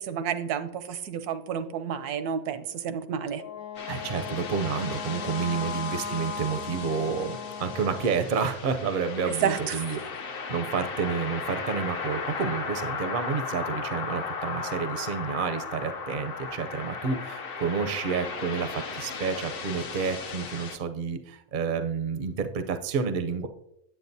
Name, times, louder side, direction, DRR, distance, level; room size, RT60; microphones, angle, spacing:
voice 1, 0.0-3.4 9.3-9.8, right 8 dB, 85° right, 11 dB, 1.2 m, -30 dB
Wind instrument woodwind instrument, 3.3-8.3, left 6 dB, 75° left, 1.2 m, -37 dB
sound 1, 3.7-20.8, left 5 dB, 55° left, 0.6 m, -36 dB
voice 2, 3.9-23.5, right 6 dB, 60° right, 8 dB, 0.5 m, -30 dB
9.3 x 7.8 x 2.7 m, 0.81 s
omnidirectional pair, 1.6 m